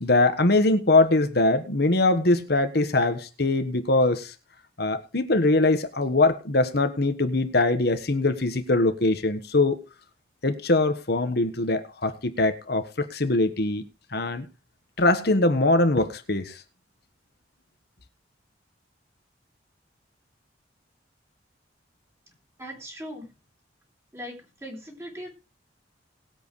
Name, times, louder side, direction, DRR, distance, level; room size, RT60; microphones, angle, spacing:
voice 1, 0.0-4.3 4.8-9.8 10.4-13.8 14.1-14.5 15.0-16.5, left 2 dB, 60° left, 1.4 m, -22 dB
voice 2, 22.3-23.3 24.1-25.3, equal, 15° right, 3.6 m, -40 dB
20.0 x 8.1 x 3.2 m
head